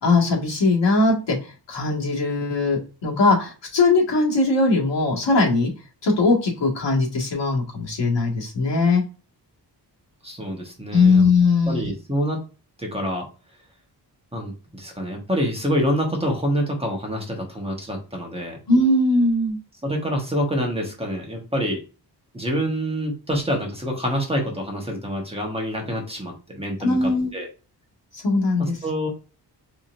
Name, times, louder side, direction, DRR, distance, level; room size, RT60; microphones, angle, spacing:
voice 1, 0.0-5.7 6.0-9.0 10.9-11.9 18.7-19.6 26.8-27.3 28.1-28.8, left 3 dB, 80° left, -2 dB, 1.8 m, -20 dB
voice 2, 10.2-11.3 11.7-12.4 12.8-13.2 14.3-18.6 19.8-21.8 22.3-27.5 28.6-29.1, equal, 15° right, 0 dB, 1.1 m, -26 dB
4.3 x 3.6 x 2.5 m, 0.33 s
wide cardioid pair, 150°, 42 cm